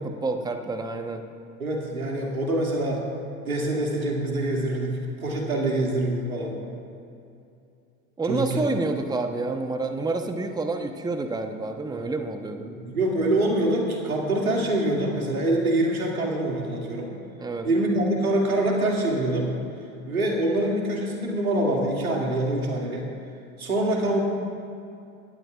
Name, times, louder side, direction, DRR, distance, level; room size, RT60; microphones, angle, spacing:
voice 1, 0.0-1.2 8.2-12.7 17.4-17.7, right 3 dB, 10° right, 6 dB, 0.9 m, -28 dB
voice 2, 1.6-3.0 3.5-6.6 8.3-8.7 12.0-12.1 12.7-17.1 17.6-19.5 20.1-23.1 23.6-24.2, right 1 dB, 90° right, -1 dB, 2.4 m, -25 dB
26.5 x 12.0 x 2.4 m, 2.6 s
hypercardioid pair, 75°, 42 cm